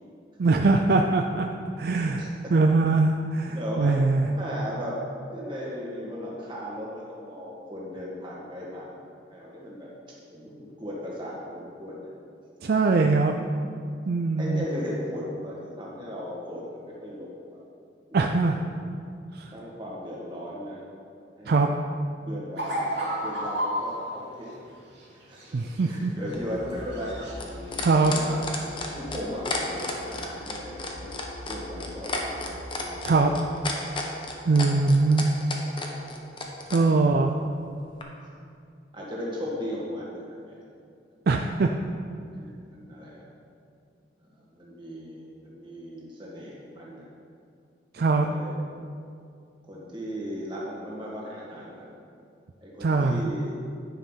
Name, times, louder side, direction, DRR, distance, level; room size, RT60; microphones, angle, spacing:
voice 1, 0.4-1.5 1.8-4.3 12.6-13.3 14.1-14.6 18.1-18.6 19.4-19.5 21.5-21.7 25.5-26.1 27.8-28.1 33.0-33.3 34.5-35.3 36.7-37.4 41.3-41.7 47.9-48.3 52.8-53.3, right 3 dB, 55° right, 3 dB, 0.4 m, -22 dB
voice 2, 1.9-2.5 3.5-4.0 4.3-5.0 5.3-8.9 9.3-9.9 10.3-12.1 14.4-17.6 18.4-18.6 19.5-20.8 21.4-21.7 22.2-24.5 25.1-27.2 27.9-28.5 28.9-31.2 31.5-32.5 37.1-37.2 38.9-40.6 42.3-43.3 44.3-47.1 48.0-48.6 49.6-51.9 52.6-53.5, equal, 25° right, -6 dB, 2.1 m, -37 dB
sound 1, 22.6-23.9 25.2-26.0 26.3-27.4 27.7-28.2 28.6-28.7, right 1 dB, 75° right, 2.3 m, -32 dB
sound 2, 26.3-33.6, left 1 dB, 65° left, 1.3 m, -43 dB
sound 3, 26.3-36.8 38.0-38.1, left 3 dB, 25° left, 0.9 m, -33 dB
10.0 x 5.5 x 5.7 m, 2.4 s
head